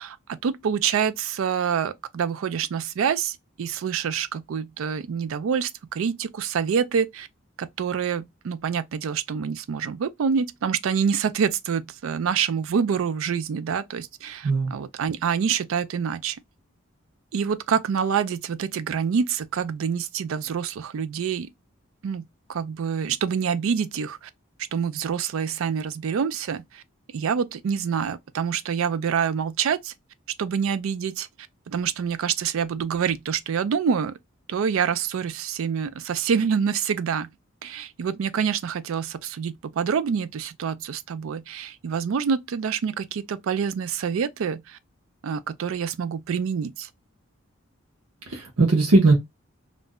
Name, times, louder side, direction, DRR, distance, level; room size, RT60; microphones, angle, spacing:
voice 1, 0.0-7.3 7.6-16.4 17.3-21.5 22.0-24.3 24.7-26.8 27.1-29.9 30.4-31.3 31.7-34.2 34.5-37.3 37.6-44.8 45.2-46.9, right 7 dB, 75° right, 0.3 m, -26 dB
voice 2, 14.4-14.7 48.3-49.1, right 2 dB, 90° right, 0.8 m, -19 dB
2.5 x 2.0 x 3.5 m
head